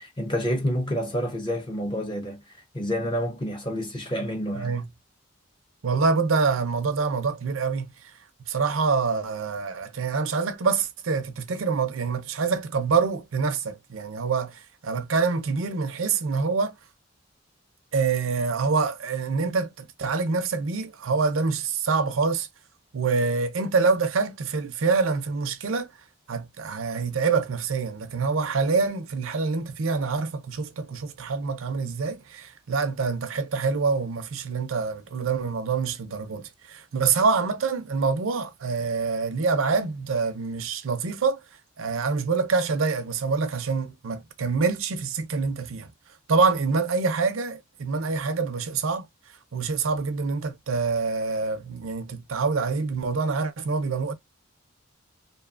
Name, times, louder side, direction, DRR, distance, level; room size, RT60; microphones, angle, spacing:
voice 1, 0.0-4.8, equal, 25° left, 0.5 m, -29 dB
voice 2, 4.5-4.9 5.8-8.1 8.5-16.8 17.9-22.5 22.9-25.9 26.3-41.4 41.8-45.9 46.3-49.1 49.5-54.1, right 4 dB, 75° right, 0.5 m, -26 dB
2.7 x 2.3 x 2.3 m
head